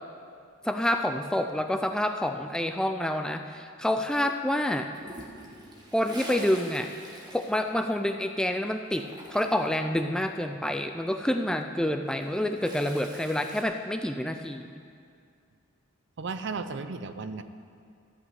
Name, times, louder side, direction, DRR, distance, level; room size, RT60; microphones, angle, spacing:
voice 1, 0.6-4.9 5.9-6.9 7.3-14.7, left 1 dB, 5° left, 6 dB, 0.3 m, -28 dB
Toilet flush, 4.9-8.4 8.7-9.9 11.9-13.6, right 1 dB, 20° right, 1.4 m, -45 dB
voice 2, 16.2-17.4, right 4 dB, 55° right, 11 dB, 0.5 m, -34 dB
13.5 x 5.9 x 7.8 m, 2.4 s
head